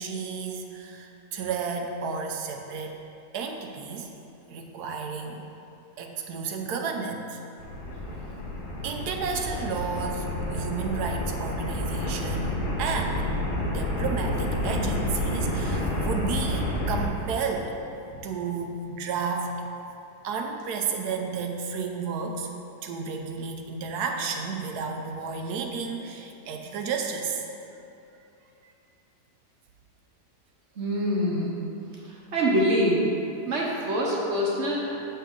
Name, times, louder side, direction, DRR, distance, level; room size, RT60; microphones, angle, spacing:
voice 1, 0.0-2.9 3.3-4.1 4.5-5.4 6.0-7.4 8.8-13.2 13.7-17.7 18.2-19.5 20.2-22.5 22.8-27.4 28.6-28.7, right 5 dB, 75° right, 3 dB, 1.2 m, -32 dB
sound 1, 7.6-17.1, left 1 dB, 75° left, 1.6 m, -29 dB
voice 2, 30.8-31.6 32.0-33.1 33.5-35.0, equal, 50° right, -4 dB, 1.1 m, -25 dB
7.7 x 5.5 x 3.7 m, 2.7 s
omnidirectional pair, 1.8 m